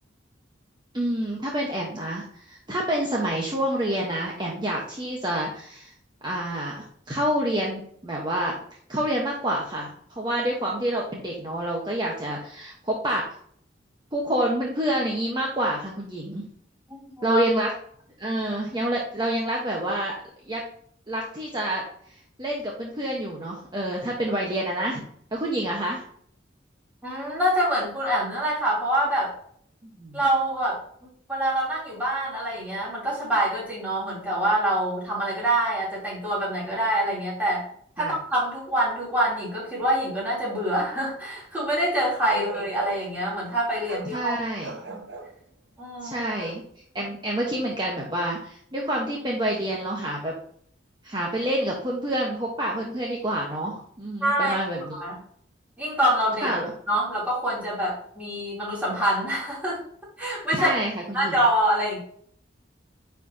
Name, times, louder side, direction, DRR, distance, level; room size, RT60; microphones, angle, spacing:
voice 1, 0.9-5.9 6.2-8.5 8.9-13.2 14.1-16.4 17.2-17.7 18.2-20.1 20.4-20.6 21.1-21.8 22.4-25.0 25.3-26.0 29.8-30.2 38.0-38.1 42.3-42.4 44.1-44.7 46.0-46.6 46.9-50.3 51.0-55.0 56.4-56.6 60.5-61.3, right 1 dB, 25° right, -2 dB, 1.1 m, -28 dB
voice 2, 16.9-17.4 27.0-29.3 30.1-30.8 31.3-37.6 38.0-44.3 44.9-45.0 45.8-46.2 54.2-54.6 54.9-55.2 55.8-56.5 56.9-59.8 60.2-60.7 61.1-62.0, right 1 dB, 10° right, -7 dB, 3.2 m, -25 dB
Bark, 42.3-43.2 43.9-44.1 44.6-45.3 46.4-46.6, right 3 dB, 65° right, 1.2 m, -37 dB
9.9 x 4.6 x 2.8 m, 0.62 s
head